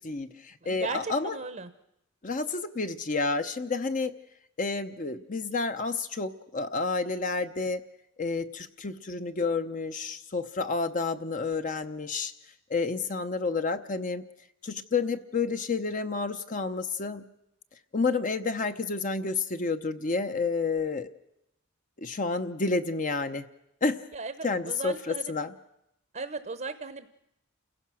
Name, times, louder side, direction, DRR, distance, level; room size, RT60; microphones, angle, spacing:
voice 1, 0.0-1.4 2.2-4.1 4.6-7.8 8.2-12.3 12.7-14.2 14.6-17.3 17.9-21.1 22.0-23.5 23.8-24.0 24.4-25.5, left 4 dB, 40° left, 9 dB, 0.8 m, -30 dB
voice 2, 0.6-1.7 24.1-25.3 26.1-27.1, right 4 dB, 40° right, 11 dB, 0.9 m, -37 dB
29.0 x 16.5 x 6.3 m, 0.83 s
head